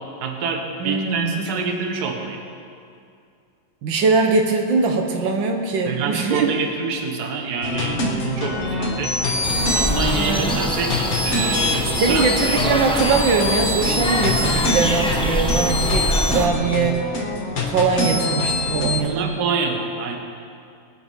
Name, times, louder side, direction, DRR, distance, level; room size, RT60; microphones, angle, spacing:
voice 1, 0.2-2.4 5.8-9.2 9.7-12.3 19.0-20.2, right 5 dB, 60° right, 4 dB, 1.7 m, -27 dB
voice 2, 0.8-1.3 3.8-6.5 10.1-10.5 11.9-17.1 17.7-19.3, right 4 dB, 85° right, 3 dB, 1.9 m, -21 dB
sound 1, 7.6-19.0, left 2 dB, 40° left, 1.6 m, -24 dB
sound 2, 9.4-16.5, left 1 dB, 5° left, 0.6 m, -25 dB
21.0 x 9.3 x 5.6 m, 2.4 s
omnidirectional pair, 2.0 m